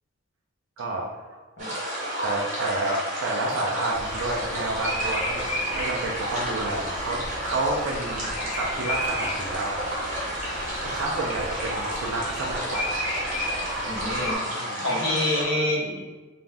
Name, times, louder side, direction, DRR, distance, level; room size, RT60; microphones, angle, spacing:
voice 1, 0.8-1.2 2.2-8.3 8.5-9.9 10.8-13.0 14.6-14.8, right 2 dB, 65° right, -1 dB, 0.3 m, -30 dB
sound 1, 1.6-15.4, right 1 dB, 35° right, 0.7 m, -31 dB
Bird vocalization bird call bird song, 3.9-14.4, equal, 35° left, 0.6 m, -34 dB
voice 2, 13.8-14.4 14.8-16.0, left 1 dB, 65° left, -5 dB, 0.9 m, -26 dB
2.5 x 2.0 x 3.3 m, 1.3 s
head